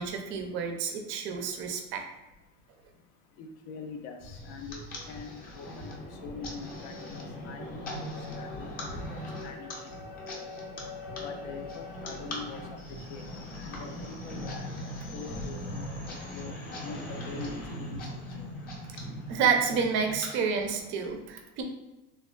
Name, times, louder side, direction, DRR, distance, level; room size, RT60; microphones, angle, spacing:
voice 1, 0.0-2.0 19.3-21.6, right 6 dB, 40° right, 3 dB, 0.4 m, -29 dB
voice 2, 3.4-4.8 5.1-6.9 7.4-8.7 9.1-9.8 10.3-10.4 11.2-12.6 12.9-14.7 15.1-16.5 16.8-18.0 18.4-18.5, left 4 dB, 80° left, 4 dB, 0.6 m, -44 dB
sound 1, 4.2-21.1, left 1 dB, 25° left, 0.5 m, -40 dB
3.4 x 2.3 x 2.2 m, 1.0 s
cardioid pair, 155°, 33 cm